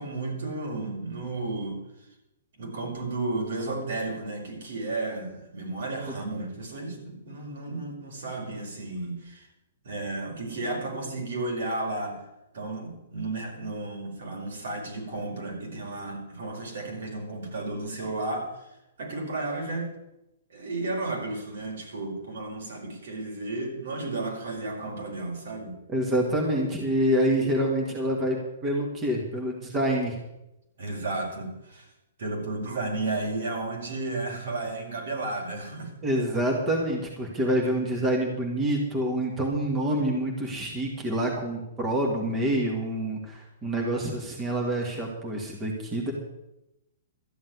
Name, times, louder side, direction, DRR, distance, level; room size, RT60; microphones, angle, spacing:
voice 1, 0.0-1.8 2.6-9.5 9.8-12.2 12.5-18.7 19.0-19.9 20.5-25.8 30.8-31.9 32.2-35.9, right 2 dB, 70° right, 0 dB, 5.1 m, -33 dB
voice 2, 25.9-28.4 28.6-30.2 36.0-46.1, right 1 dB, 15° right, 0 dB, 1.9 m, -27 dB
13.0 x 7.1 x 9.6 m, 0.91 s
hypercardioid pair, 165°, 0 cm